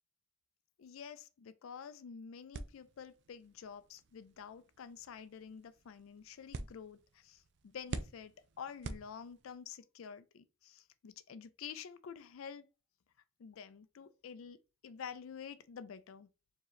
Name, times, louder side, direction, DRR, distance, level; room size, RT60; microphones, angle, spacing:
voice 1, 0.8-12.7 13.4-16.3, left 7 dB, 80° left, 0.4 m, -49 dB
sound 1, 2.5-9.7, right 3 dB, 55° right, 0.4 m, -48 dB
4.6 x 2.8 x 3.1 m
head